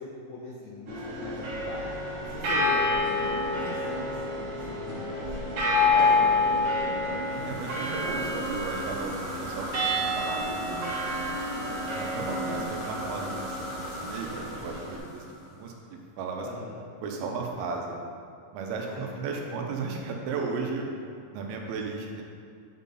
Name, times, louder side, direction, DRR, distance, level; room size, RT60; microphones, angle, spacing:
voice 1, 0.0-2.0 2.2-7.2 16.4-16.8 18.8-19.6, left 2 dB, 90° left, -4 dB, 1.5 m, -40 dB
sound 1, 0.9-15.0, left 2 dB, 55° right, 1.7 m, -29 dB
sound 2, 7.2-15.7, equal, 60° left, 3.3 m, -40 dB
voice 2, 7.3-10.9 11.7-16.5 17.0-18.0 18.5-20.9 21.3-22.2, right 4 dB, 85° right, 1 dB, 2.6 m, -35 dB
8.2 x 5.5 x 4.1 m, 2.3 s
omnidirectional pair, 4.5 m